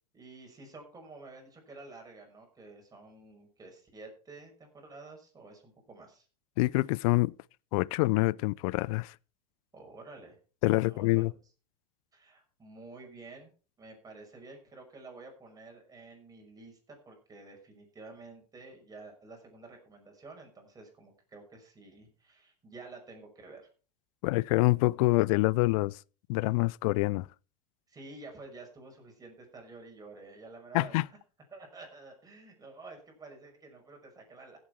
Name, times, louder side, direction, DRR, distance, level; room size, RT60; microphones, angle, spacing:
voice 1, 0.1-6.3 9.7-10.4 10.8-11.2 12.1-13.5 13.8-23.7 27.9-31.0 31.5-34.6, right 3 dB, 15° right, 5.8 m, -50 dB
voice 2, 6.6-7.3 7.7-9.1 10.6-11.3 24.2-26.0 26.3-27.3 30.7-31.1, left 22 dB, 55° left, 0.5 m, -26 dB
16.0 x 8.1 x 4.7 m
hypercardioid pair, 100°, 21 cm